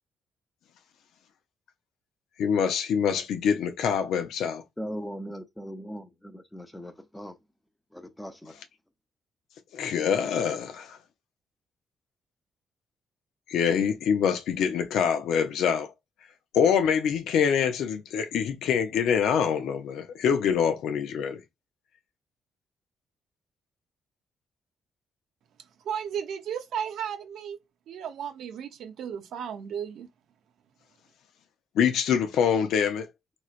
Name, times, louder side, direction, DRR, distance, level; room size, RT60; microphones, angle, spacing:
voice 1, 2.4-4.6 9.7-11.0 13.5-15.9 16.5-21.4 31.8-33.1, left 7 dB, 80° left, 0.6 m, -25 dB
voice 2, 4.8-7.4 7.9-8.5, equal, 10° left, 0.7 m, -39 dB
voice 3, 25.8-27.6 27.9-30.1, right 8 dB, 75° right, 0.6 m, -34 dB
3.1 x 3.0 x 2.4 m
cardioid pair, 90°, 0 cm